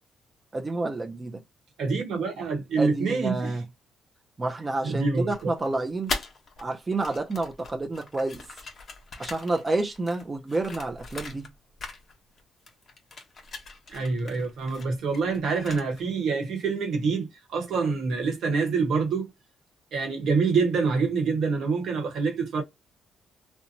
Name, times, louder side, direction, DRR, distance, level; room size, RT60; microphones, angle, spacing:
voice 1, 0.5-1.4 2.8-3.6 4.4-6.2 6.6-8.4 9.2-11.5, right 2 dB, 25° right, 0.4 m, -29 dB
voice 2, 1.8-3.6 4.8-5.5 13.9-19.3 19.9-22.6, right 4 dB, 70° right, 1.0 m, -26 dB
sound 1, 5.3-6.6 6.9-11.5 11.8-12.4 12.7-16.1, left 4 dB, 45° left, 0.8 m, -40 dB
2.7 x 2.1 x 2.6 m
cardioid pair, 90°, 0 cm